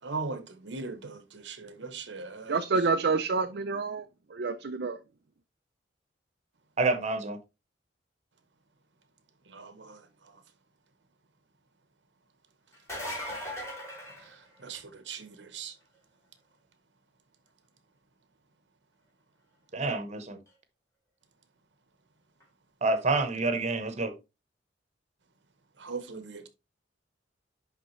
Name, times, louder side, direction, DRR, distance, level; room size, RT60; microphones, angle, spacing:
voice 1, 0.0-2.7 9.4-10.4 14.1-15.8 25.8-26.5, right 4 dB, 75° right, 1.0 m, -40 dB
voice 2, 2.5-5.0, right 4 dB, 60° right, 0.5 m, -28 dB
voice 3, 6.8-7.4 19.7-20.4 22.8-24.1, right 3 dB, 40° right, 1.0 m, -28 dB
sound 1, 12.7-15.0 20.5-20.6 22.4-22.5, left 1 dB, 15° left, 2.8 m, -38 dB
10.5 x 3.7 x 3.1 m
head